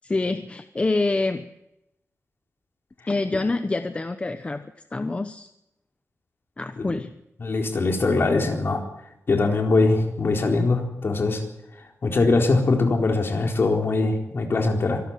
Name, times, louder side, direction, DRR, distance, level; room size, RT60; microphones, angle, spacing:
voice 1, 0.0-1.5 3.1-4.6 4.9-5.5 6.6-7.1, left 3 dB, 25° left, 9 dB, 0.9 m, -26 dB
voice 2, 7.4-8.8 9.3-11.4 12.0-15.0, left 3 dB, 50° left, 3 dB, 4.1 m, -22 dB
25.0 x 13.0 x 9.6 m, 0.86 s
wide cardioid pair, 155°, 5 cm